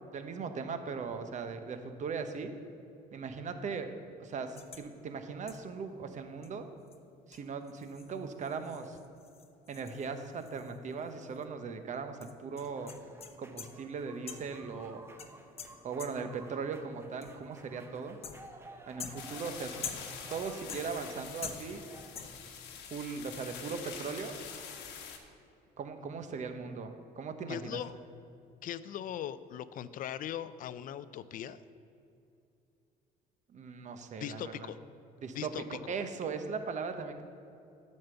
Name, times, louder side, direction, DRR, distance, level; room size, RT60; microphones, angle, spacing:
voice 1, 0.1-2.5 3.1-3.9 4.2-6.7 7.3-9.0 9.7-13.0 13.4-15.0 15.8-18.2 18.9-19.8 20.3-21.9 22.9-24.3 25.8-27.8 33.5-34.7 35.2-35.5 35.9-37.2, right 5 dB, 45° right, 8 dB, 0.9 m, -39 dB
sound 1, 4.6-4.9 5.5-5.8 6.4-6.5 6.9-7.0 7.3-11.1 11.3-11.4 12.2-13.9 14.3-14.6 15.2-16.4 17.2-17.6 18.2-18.6 19.0-20.3 20.7-21.2 21.4-21.9 22.1-22.5, left 6 dB, 35° left, 0.8 m, -46 dB
sound 2, 12.7-22.1, right 2 dB, 15° right, 0.8 m, -54 dB
sound 3, 19.2-25.2, left 7 dB, 90° left, 1.2 m, -46 dB
voice 2, 27.5-28.0 28.6-31.6 34.2-34.8 35.3-36.0, left 10 dB, 55° left, 15 dB, 0.4 m, -40 dB
9.4 x 5.4 x 6.9 m, 2.6 s
cardioid pair, 110°, 17 cm